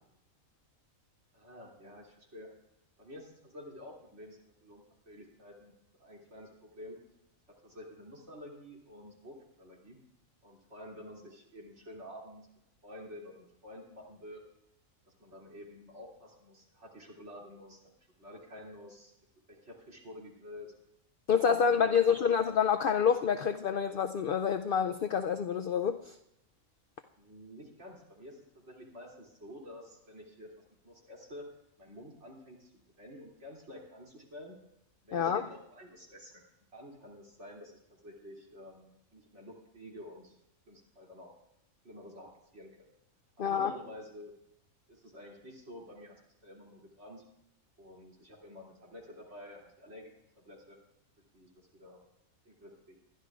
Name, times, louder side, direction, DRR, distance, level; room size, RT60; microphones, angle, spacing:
voice 1, 1.3-2.5 3.0-5.7 6.0-7.0 7.6-10.0 10.4-12.4 12.8-14.4 15.2-17.8 18.2-19.1 19.5-20.7 21.3-22.3 27.2-30.5 30.8-31.4 31.8-32.7 33.0-34.6 35.0-36.4 36.7-40.3 40.7-41.3 41.8-42.7 43.5-44.3 44.9-46.1 46.4-47.2 47.8-50.1 50.4-50.8 51.3-52.0 52.4-52.9, left 1 dB, 50° right, -3 dB, 3.1 m, -50 dB
voice 2, 21.3-26.1 35.1-35.4 43.4-43.7, left 7 dB, 70° left, 8 dB, 0.5 m, -27 dB
21.5 x 12.0 x 2.4 m, 0.83 s
omnidirectional pair, 1.5 m